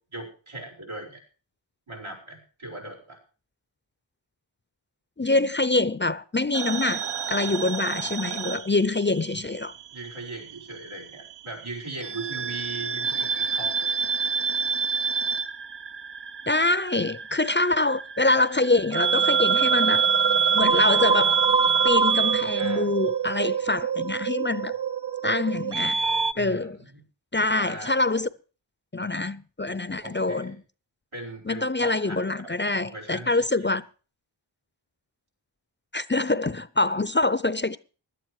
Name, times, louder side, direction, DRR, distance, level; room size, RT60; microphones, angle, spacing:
voice 1, 0.1-1.2 1.9-3.2 9.9-13.9 22.6-22.9 26.3-27.0 27.5-28.0 30.0-30.6 31.1-32.2 32.9-33.7, right 2 dB, 85° right, 5.2 m, -39 dB
voice 2, 5.2-7.0 7.3-9.7 16.5-20.0 20.5-21.4 21.8-24.7 25.2-26.0 26.4-26.8 27.3-28.3 28.9-30.6 31.5-33.8 35.9-37.8, left 2 dB, 25° left, 0.6 m, -25 dB
sound 1, 6.5-9.4 9.6-10.8 12.0-26.3, right 6 dB, 60° right, 0.8 m, -25 dB
16.5 x 11.0 x 4.8 m
wide cardioid pair, 40°, 47 cm